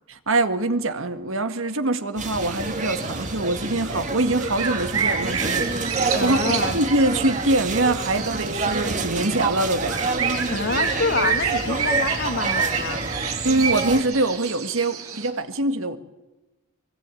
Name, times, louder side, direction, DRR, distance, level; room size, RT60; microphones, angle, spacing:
voice 1, 0.1-10.0 13.4-16.0, right 2 dB, 65° right, 1.9 m, -24 dB
sound 1, 2.2-14.0, right 3 dB, 35° right, 2.1 m, -28 dB
sound 2, 2.3-15.3, right 6 dB, 80° right, 6.1 m, -30 dB
voice 2, 6.1-6.8 10.4-13.0, left 4 dB, 55° left, 2.1 m, -27 dB
23.5 x 23.5 x 9.2 m
head